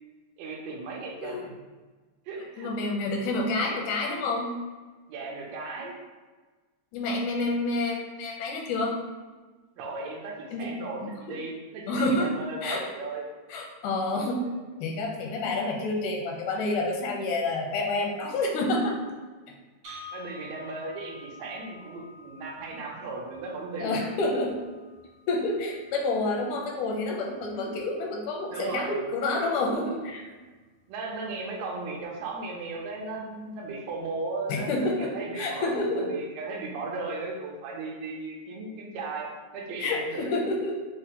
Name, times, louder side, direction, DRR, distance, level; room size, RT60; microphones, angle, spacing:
voice 1, 0.4-1.5 2.3-2.7 5.1-5.9 9.8-13.3 20.1-24.0 28.5-29.0 30.9-40.2, right 3 dB, 80° right, -1 dB, 1.6 m, -36 dB
voice 2, 2.6-4.6 6.9-8.9 10.5-10.7 11.0-11.4 11.9-12.3 12.6-12.8 13.5-14.4 14.8-19.0 23.8-24.6 25.3-30.2 34.5-36.1 39.8-40.7, left 2 dB, 85° left, 0 dB, 2.1 m, -28 dB
sound 1, 19.8-27.9, left 2 dB, 65° right, 1.2 m, -50 dB
5.3 x 2.1 x 2.8 m, 1.3 s
omnidirectional pair, 3.6 m